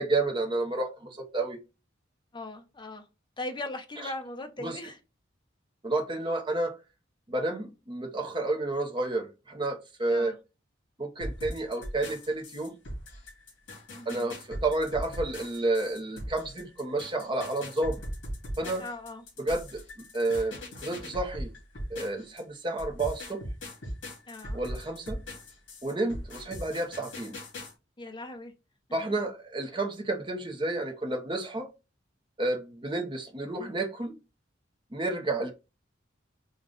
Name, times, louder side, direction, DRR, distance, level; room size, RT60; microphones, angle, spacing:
voice 1, 0.0-1.6 4.6-4.8 5.8-6.8 7.3-10.3 11.0-12.7 14.1-18.0 18.6-18.8 19.4-19.8 20.1-20.6 20.8-21.5 21.9-23.4 24.5-25.2 25.8-27.4 28.9-31.7 32.4-34.1 34.9-35.5, right 2 dB, 25° right, 0.8 m, -30 dB
voice 2, 2.3-3.1 3.4-5.0 10.1-10.4 13.9-14.3 18.8-19.3 24.3-24.6 28.0-28.5 28.9-29.2, left 2 dB, 25° left, 0.7 m, -39 dB
sound 1, 11.2-22.4 22.8-27.7, equal, 75° left, 2.7 m, -40 dB
5.1 x 2.3 x 3.7 m
head